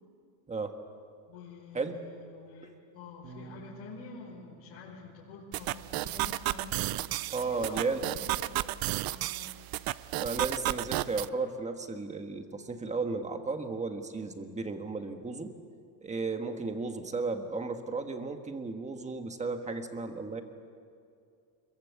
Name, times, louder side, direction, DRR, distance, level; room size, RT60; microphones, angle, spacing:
voice 1, 1.3-9.5, left 4 dB, 65° left, -6 dB, 5.5 m, -48 dB
Bass guitar, 3.2-9.5, right 6 dB, 80° right, 2.3 m, -56 dB
sound 1, 5.5-11.3, right 17 dB, 50° right, 0.5 m, -33 dB
voice 2, 7.3-8.1 10.2-15.5 16.0-20.4, right 4 dB, 15° right, 6 dB, 1.4 m, -34 dB
26.0 x 22.5 x 8.4 m, 2.4 s
cardioid pair, 165°, 49 cm